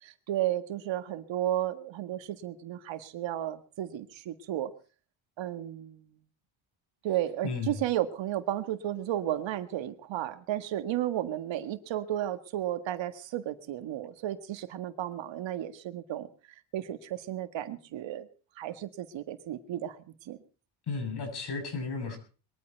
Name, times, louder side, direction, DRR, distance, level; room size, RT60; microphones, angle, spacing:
voice 1, 0.0-4.7 5.4-6.1 7.0-16.3 16.7-18.3 18.6-20.4, right 12 dB, 70° right, 10 dB, 1.8 m, -33 dB
voice 2, 7.4-7.8 20.9-22.2, left 4 dB, 55° left, 5 dB, 7.8 m, -34 dB
22.0 x 13.5 x 4.6 m, 0.38 s
cardioid pair, 95°, 47 cm